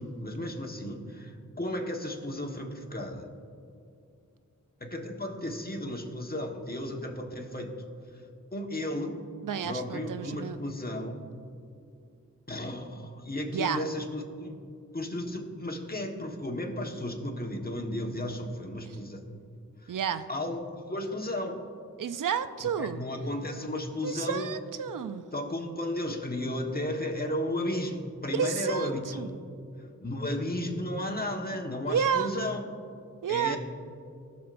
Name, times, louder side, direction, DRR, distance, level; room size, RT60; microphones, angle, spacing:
voice 1, 0.0-3.3 4.8-8.2 8.5-9.2 9.6-11.1 12.5-14.6 14.9-19.2 19.8-19.9 20.3-21.6 22.8-24.5 25.3-29.4 30.0-32.6 33.3-33.6, left 1 dB, 30° left, 1 dB, 1.4 m, -34 dB
voice 2, 9.4-10.6 13.5-13.8 19.9-20.3 22.0-23.0 24.0-25.2 28.3-28.9 29.2-29.3 31.9-32.3 33.2-33.6, right 7 dB, 85° right, 12 dB, 0.5 m, -30 dB
19.5 x 6.8 x 2.6 m, 2.5 s
wide cardioid pair, 50°, 31 cm